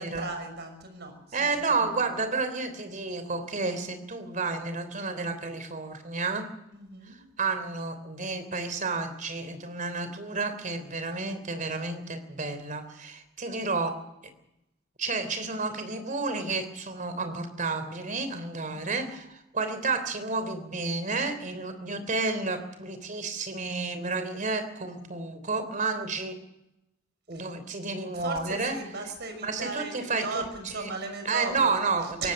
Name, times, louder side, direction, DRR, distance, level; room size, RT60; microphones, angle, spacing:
voice 1, 0.0-2.3 6.7-7.2 18.6-19.1 27.3-27.5 28.1-32.3, right 3 dB, 55° right, 6 dB, 6.1 m, -37 dB
voice 2, 1.3-6.5 7.4-14.0 15.0-26.3 27.3-28.8 29.4-30.4 30.8-30.9 31.2-32.3, right 3 dB, 40° right, 10 dB, 3.3 m, -31 dB
24.5 x 18.0 x 6.5 m, 0.89 s
head